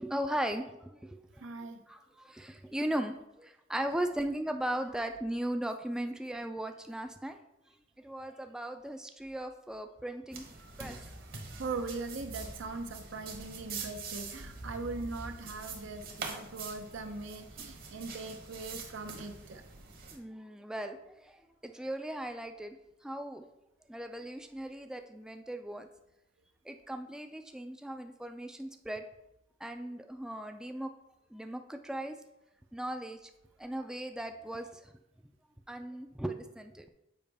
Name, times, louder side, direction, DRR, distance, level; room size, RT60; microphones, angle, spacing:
voice 1, 0.0-7.4 8.0-10.5 10.8-11.1 20.1-22.8 23.0-23.5 23.9-25.9 26.6-29.1 29.6-30.9 31.3-32.2 32.7-33.3 33.6-34.9 35.7-36.9, right 1 dB, 5° right, 6 dB, 0.3 m, -38 dB
voice 2, 1.4-1.8 10.6-10.7 11.5-19.6, right 3 dB, 85° right, 6 dB, 0.7 m, -40 dB
sound 1, 10.3-20.2, right 4 dB, 50° right, 1.1 m, -44 dB
7.1 x 5.0 x 3.4 m, 0.86 s
head